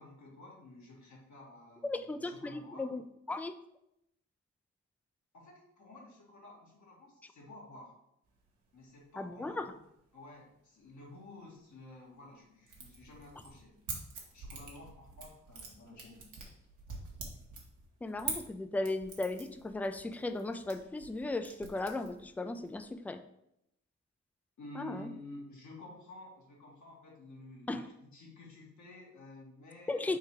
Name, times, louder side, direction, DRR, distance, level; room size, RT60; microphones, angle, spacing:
voice 1, 0.0-2.9 5.3-7.9 8.7-9.8 10.1-13.7 14.3-16.2 24.6-30.2, left 2 dB, 65° left, -3 dB, 1.5 m, -52 dB
voice 2, 1.8-3.0 3.3-3.5 9.2-9.7 18.0-23.2 24.7-25.1 27.7-27.8 29.9-30.2, left 2 dB, 5° left, 9 dB, 0.3 m, -36 dB
sound 1, 8.3-8.5 9.0-9.1 9.3-10.1 10.4-10.6 11.0-11.1 11.5-12.2 12.6-22.9, right 4 dB, 75° right, 1.0 m, -46 dB
3.8 x 2.6 x 4.5 m, 0.79 s
supercardioid pair, 50°, 31 cm